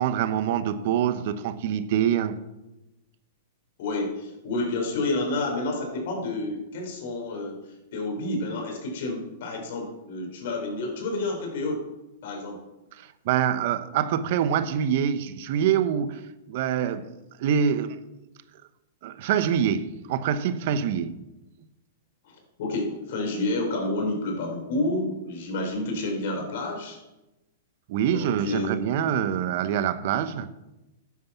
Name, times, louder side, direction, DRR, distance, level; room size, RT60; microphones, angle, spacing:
voice 1, 0.0-2.4 13.0-17.1 17.4-18.0 19.0-21.2 27.9-30.5, right 9 dB, 60° right, 1.0 m, -25 dB
voice 2, 3.8-7.6 7.9-11.8 12.2-12.6 22.2-27.0 28.0-28.8, left 2 dB, 65° left, 4.6 m, -29 dB
12.0 x 9.5 x 5.9 m
hypercardioid pair, 125°, 0 cm